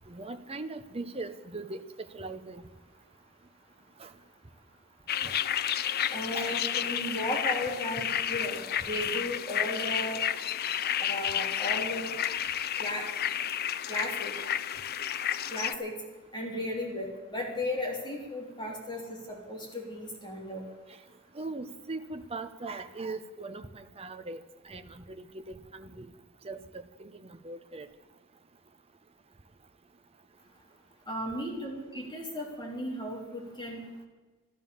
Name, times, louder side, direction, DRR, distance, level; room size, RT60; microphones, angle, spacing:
voice 1, 0.1-2.7 4.0-4.1 5.2-5.4 6.3-6.6 21.3-26.1 26.4-27.9, right 3 dB, 25° right, 8 dB, 0.9 m, -40 dB
sound 1, 5.1-15.7, left 10 dB, 45° left, 0.5 m, -31 dB
voice 2, 6.1-8.6 8.8-10.2 11.0-12.1 12.8-13.0 13.9-14.3 15.5-15.9 16.3-20.6 31.1-33.8, left 1 dB, 20° left, -1 dB, 3.4 m, -35 dB
13.0 x 13.0 x 7.1 m, 1.3 s
head